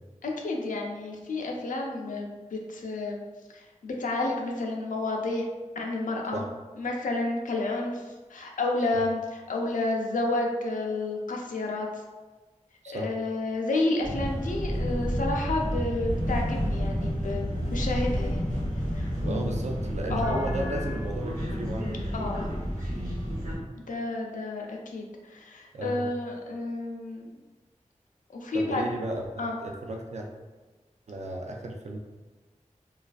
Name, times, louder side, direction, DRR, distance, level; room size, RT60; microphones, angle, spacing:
voice 1, 0.2-3.2 3.5-5.4 5.8-6.4 6.8-11.9 12.9-18.5 18.9-19.5 20.1-20.4 22.1-22.5 23.9-27.3 28.3-28.8 29.4-29.6, left 2 dB, 85° left, 0 dB, 0.4 m, -30 dB
sound 1, 14.0-23.6, equal, 90° right, 0.9 m, -30 dB
voice 2, 19.2-22.3 25.7-26.1 28.5-30.3 31.1-32.0, right 1 dB, 60° right, 2 dB, 0.4 m, -34 dB
2.4 x 2.2 x 2.4 m, 1.3 s
wide cardioid pair, 45°, 13 cm